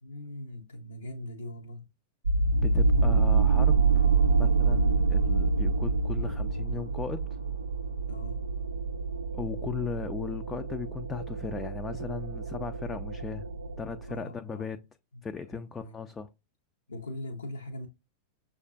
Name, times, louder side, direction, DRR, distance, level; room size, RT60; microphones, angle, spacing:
voice 1, 0.0-1.9 8.1-8.4 14.1-14.7 15.5-15.9 16.9-17.9, left 1 dB, 75° left, 0.6 m, -41 dB
sound 1, 2.2-14.2, right 4 dB, 75° right, 0.4 m, -27 dB
voice 2, 2.6-7.2 9.3-13.5 13.8-14.8 15.2-16.3, left 6 dB, 15° left, 0.3 m, -37 dB
6.4 x 2.5 x 2.4 m
figure-of-eight pair, 90°, 0 cm